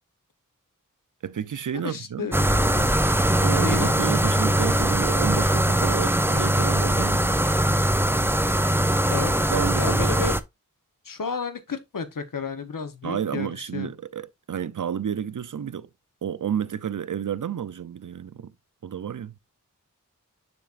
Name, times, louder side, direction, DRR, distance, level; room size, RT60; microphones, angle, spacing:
voice 1, 1.2-2.3 3.4-7.2 9.5-10.0 13.0-15.9 16.2-18.5 18.8-19.3, right 8 dB, 70° right, 0.6 m, -30 dB
voice 2, 1.8-3.0 3.6-4.2 9.1-9.3 9.8-10.4 11.0-13.9, left 5 dB, 80° left, 1.0 m, -32 dB
sound 1, 2.3-10.4, right 1 dB, 5° right, 0.5 m, -21 dB
7.1 x 5.8 x 2.5 m
wide cardioid pair, 50°, 32 cm